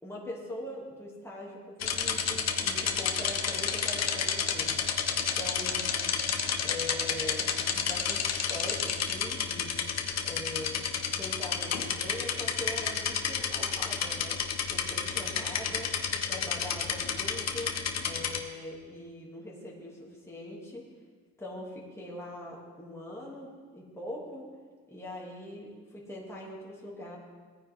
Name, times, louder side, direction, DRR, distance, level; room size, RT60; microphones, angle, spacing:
voice 1, 0.0-4.8 5.3-5.9 6.6-9.7 10.2-10.9 11.2-14.4 14.7-15.9 16.2-17.7 18.0-20.9 21.4-24.5 24.9-27.2, left 1 dB, 10° left, -4 dB, 2.7 m, -42 dB
sound 1, 1.8-18.4, left 7 dB, 60° left, 1.2 m, -31 dB
18.0 x 9.4 x 3.7 m, 1.5 s
cardioid pair, 90°, 30 cm